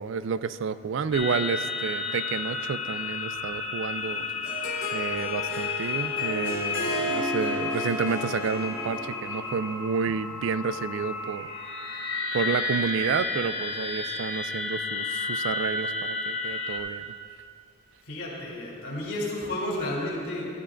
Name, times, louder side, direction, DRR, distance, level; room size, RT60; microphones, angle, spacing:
voice 1, 0.0-4.3 4.9-11.5 11.9-12.0 12.3-17.1, right 5 dB, 60° right, 14 dB, 0.3 m, -30 dB
sound 1, 1.1-16.8, left 4 dB, 55° left, 1.7 m, -32 dB
Harp, 4.0-9.3, left 1 dB, 40° left, 0.9 m, -32 dB
voice 2, 18.0-20.4, left 1 dB, 85° left, -4 dB, 3.1 m, -32 dB
15.0 x 13.0 x 2.5 m, 2.4 s
head